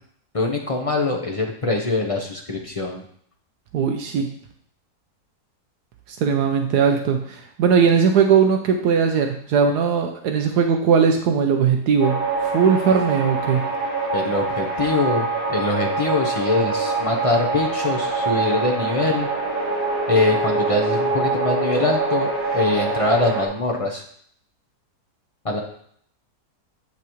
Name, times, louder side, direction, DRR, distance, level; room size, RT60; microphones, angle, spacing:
voice 1, 0.3-3.0 14.1-19.3 20.1-24.0 25.4-25.6, left 2 dB, 55° left, 0 dB, 0.3 m, -23 dB
voice 2, 3.7-4.3 6.1-12.2 12.4-13.6, right 6 dB, 75° right, 4 dB, 1.2 m, -19 dB
sound 1, 12.0-23.5, right 3 dB, 30° left, 2.8 m, -24 dB
8.2 x 5.9 x 3.0 m, 0.63 s
omnidirectional pair, 1.8 m